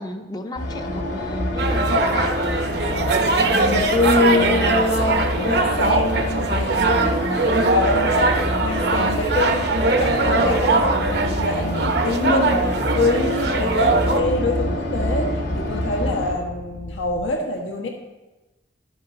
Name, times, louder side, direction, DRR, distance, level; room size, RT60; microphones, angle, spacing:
voice 1, 0.0-2.4, left 2 dB, 20° left, 7 dB, 0.6 m, -33 dB
sound 1, 0.6-16.3, left 1 dB, 70° left, 2.3 m, -26 dB
sound 2, 1.6-14.2, right 3 dB, 55° right, 0.8 m, -21 dB
voice 2, 2.6-7.1 7.4-17.9, left 2 dB, 90° left, 1 dB, 1.4 m, -25 dB
sound 3, 10.3-17.3, equal, 45° left, 1.0 m, -36 dB
12.5 x 7.2 x 3.8 m, 1.1 s
head